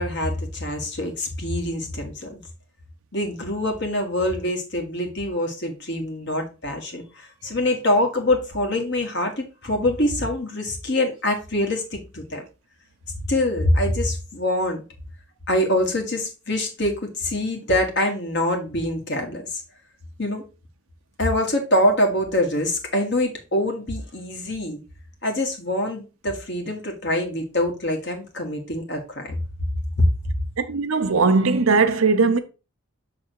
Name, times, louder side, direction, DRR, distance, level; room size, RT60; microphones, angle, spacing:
voice 1, 0.0-2.4 3.1-12.4 13.3-14.8 15.5-19.6 20.2-20.4 21.2-24.8 25.2-29.3 30.0-30.1, left 1 dB, 50° left, 1.7 m, -24 dB
voice 2, 30.6-32.4, right 4 dB, 75° right, 0.7 m, -19 dB
6.7 x 3.5 x 4.6 m
head